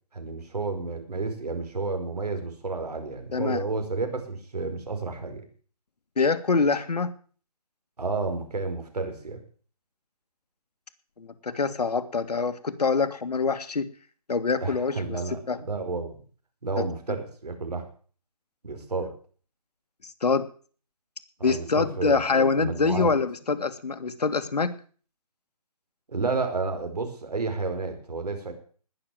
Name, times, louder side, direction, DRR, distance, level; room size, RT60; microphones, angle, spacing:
voice 1, 0.1-5.4 8.0-9.4 14.6-16.2 16.6-17.9 18.6-19.1 21.4-22.2 22.6-23.1 26.1-28.5, right 3 dB, 85° right, 6 dB, 5.0 m, -31 dB
voice 2, 3.3-3.6 6.2-7.1 11.2-13.9 14.3-15.2 15.5-15.6 16.8-16.9 20.0-20.5 21.4-24.7, left 4 dB, 85° left, 8 dB, 1.9 m, -25 dB
20.0 x 6.8 x 7.8 m, 0.43 s
hypercardioid pair, 170°, 20 cm